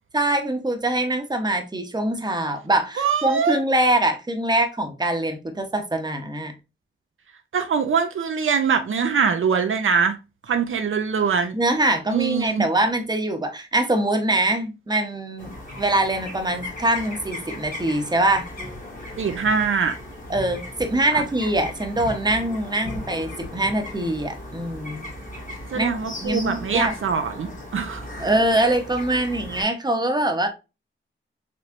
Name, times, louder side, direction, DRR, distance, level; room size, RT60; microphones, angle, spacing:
voice 1, 0.1-6.5 11.5-18.5 20.3-25.1 25.7-25.9 26.2-26.9 28.2-30.5, right 1 dB, 20° right, 0.9 m, -23 dB
voice 2, 3.0-3.6 7.5-10.2 10.5-11.6 12.1-12.6 19.2-20.0 21.1-21.2 25.7-28.0, right 6 dB, 70° right, 0.6 m, -23 dB
sound 1, 15.4-29.6, left 1 dB, 40° left, 1.8 m, -37 dB
4.4 x 3.2 x 2.5 m
cardioid pair, 70°, 21 cm